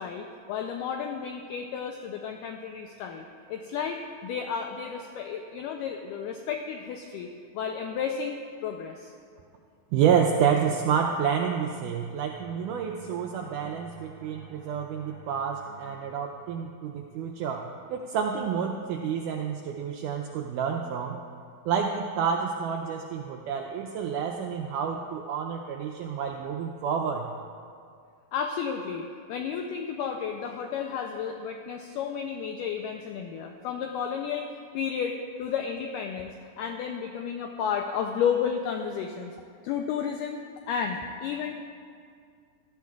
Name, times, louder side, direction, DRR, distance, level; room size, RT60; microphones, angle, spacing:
voice 1, 0.0-7.3 7.5-8.4 8.6-9.1 28.3-36.3 36.6-39.3 39.6-40.4 40.7-41.5, left 7 dB, 80° left, 3 dB, 1.9 m, -32 dB
voice 2, 9.9-17.6 17.9-21.2 21.7-27.3, right 7 dB, 85° right, 2 dB, 1.8 m, -29 dB
sound 1, 12.4-17.8, right 3 dB, 60° right, 2.5 m, -51 dB
16.5 x 13.0 x 2.4 m, 2.2 s
omnidirectional pair, 4.3 m